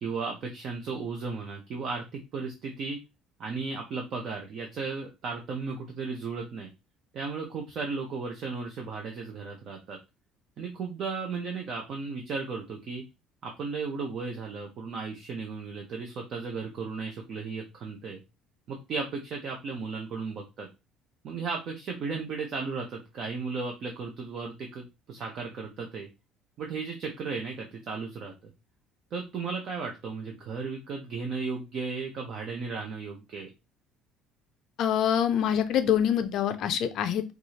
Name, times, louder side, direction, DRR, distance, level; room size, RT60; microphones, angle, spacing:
voice 1, 0.0-3.0 3.4-6.7 7.1-10.0 10.6-13.0 13.4-18.2 18.7-20.7 21.2-26.1 26.6-28.5 29.1-33.5, right 4 dB, 40° right, 1 dB, 0.6 m, -35 dB
voice 2, 34.8-37.2, left 9 dB, 45° left, 10 dB, 0.5 m, -25 dB
4.6 x 2.4 x 2.8 m, 0.25 s
cardioid pair, 175°, 0 cm